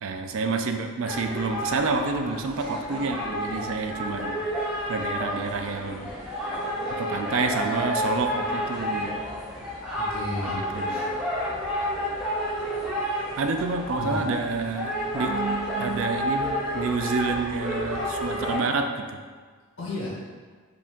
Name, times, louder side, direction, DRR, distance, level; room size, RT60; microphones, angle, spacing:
voice 1, 0.0-4.4 4.9-6.4 6.9-9.2 10.5-11.0 13.4-19.1, right 4 dB, 60° right, 5 dB, 0.4 m, -28 dB
sound 1, 1.1-18.6, equal, 5° right, 1.0 m, -30 dB
voice 2, 10.0-11.1 14.0-14.2 19.8-20.2, left 1 dB, 65° left, -5 dB, 1.4 m, -33 dB
4.9 x 2.9 x 3.5 m, 1.5 s
head